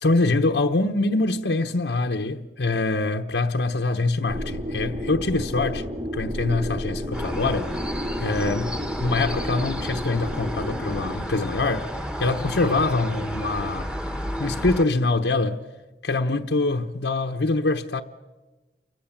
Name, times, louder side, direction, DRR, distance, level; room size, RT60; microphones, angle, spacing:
voice 1, 0.0-5.8 6.1-7.8 8.2-11.9 12.2-13.9 14.4-15.6 16.0-18.0, left 3 dB, 80° left, 1.0 m, -24 dB
sound 1, 4.3-11.1, equal, 30° right, 2.9 m, -32 dB
sound 2, 7.1-14.9, equal, 5° right, 1.1 m, -32 dB
29.5 x 24.0 x 7.3 m
head